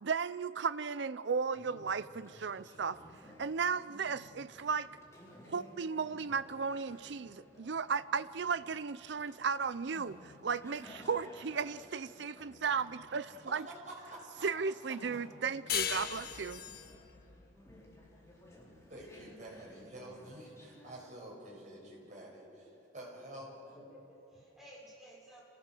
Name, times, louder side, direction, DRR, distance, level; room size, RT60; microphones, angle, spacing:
voice 1, 0.0-3.0 3.4-4.9 5.5-13.7 14.4-16.6, right 5 dB, 60° right, 15 dB, 0.5 m, -35 dB
Conversation, 1.4-21.1, left 1 dB, 15° left, 3.8 m, -57 dB
voice 2, 13.4-14.5 18.9-22.5 22.9-23.7, right 1 dB, 40° right, -3 dB, 6.7 m, -48 dB
sound 1, 15.7-18.9, left 9 dB, 50° left, 1.2 m, -38 dB
voice 3, 23.6-25.4, equal, ahead, -5 dB, 6.4 m, -55 dB
27.5 x 18.0 x 7.8 m, 2.9 s
head